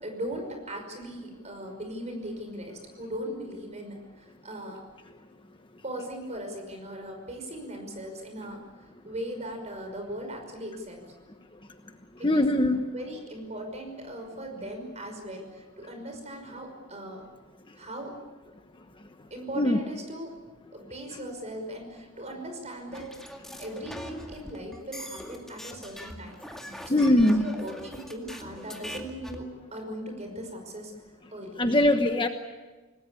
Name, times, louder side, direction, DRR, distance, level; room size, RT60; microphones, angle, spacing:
voice 1, 0.0-4.8 5.8-11.0 12.2-12.5 12.9-17.3 17.8-18.2 19.3-20.4 20.7-23.1 23.6-26.4 26.8-29.5 29.7-30.9 31.3-31.6, right 1 dB, 30° right, 4 dB, 5.5 m, -39 dB
voice 2, 12.2-12.8 19.6-19.8 26.9-27.4 31.6-32.3, left 1 dB, 25° left, 6 dB, 1.2 m, -21 dB
sound 1, 22.9-29.4, equal, ahead, 2.2 m, -42 dB
26.5 x 19.5 x 8.5 m, 1.3 s
head